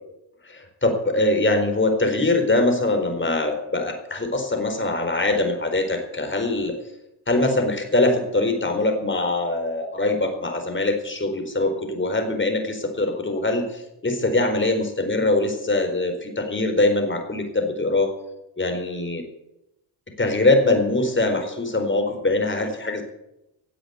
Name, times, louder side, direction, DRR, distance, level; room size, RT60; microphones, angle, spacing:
voice 1, 0.4-6.8 7.3-18.1 18.6-19.2 20.2-23.0, left 2 dB, 25° left, 5 dB, 4.4 m, -22 dB
17.5 x 8.0 x 8.4 m, 0.89 s
supercardioid pair, 70°, 49 cm